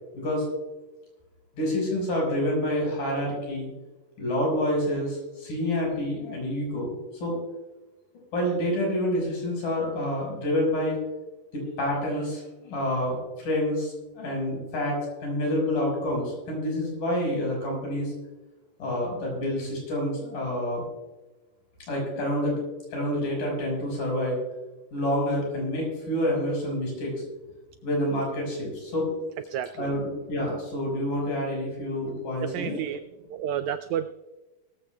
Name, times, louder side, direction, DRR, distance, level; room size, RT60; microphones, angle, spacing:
voice 1, 0.1-0.5 1.5-3.7 4.2-6.9 7.2-7.4 8.3-11.0 11.5-18.1 18.8-20.8 21.9-22.6 22.9-24.4 24.9-27.1 27.8-29.1 29.8-32.8, left 1 dB, 85° left, -1 dB, 6.8 m, -28 dB
voice 2, 29.5-30.0 32.4-33.0 33.3-34.1, right 10 dB, 90° right, 10 dB, 1.6 m, -31 dB
21.0 x 14.5 x 2.3 m, 1.1 s
omnidirectional pair, 3.8 m